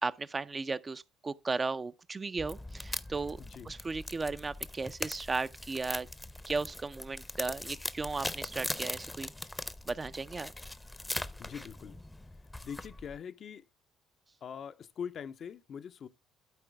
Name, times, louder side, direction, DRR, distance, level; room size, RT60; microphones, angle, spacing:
voice 1, 0.0-3.4 3.7-6.1 6.5-9.3 9.9-10.5, right 3 dB, 30° right, 0.5 m, -35 dB
sound 1, 2.4-13.2, left 1 dB, 10° left, 0.7 m, -41 dB
voice 2, 3.4-3.7 11.4-12.0 12.6-13.7 14.4-16.1, left 7 dB, 50° left, 0.5 m, -43 dB
12.5 x 4.5 x 3.3 m
hypercardioid pair, 50°, 0 cm